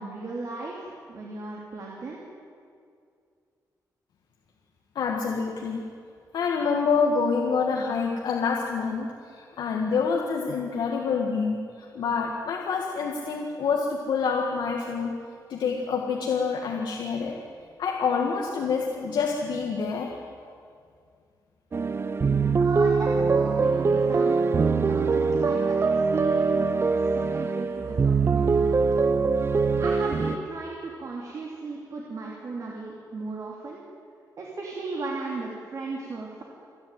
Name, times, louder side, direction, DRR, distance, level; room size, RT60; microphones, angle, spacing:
voice 1, 0.0-2.2 22.6-24.5 24.8-28.8 29.8-33.8 34.4-36.4, right 3 dB, 50° right, -3 dB, 3.0 m, -36 dB
voice 2, 5.0-5.9 6.3-15.1 15.5-17.4 17.8-20.2, left 5 dB, 85° left, 0 dB, 1.9 m, -27 dB
sound 1, 21.7-30.4, right 4 dB, 35° right, 0.7 m, -23 dB
29.0 x 11.0 x 9.2 m, 2.3 s
wide cardioid pair, 140°, 7 cm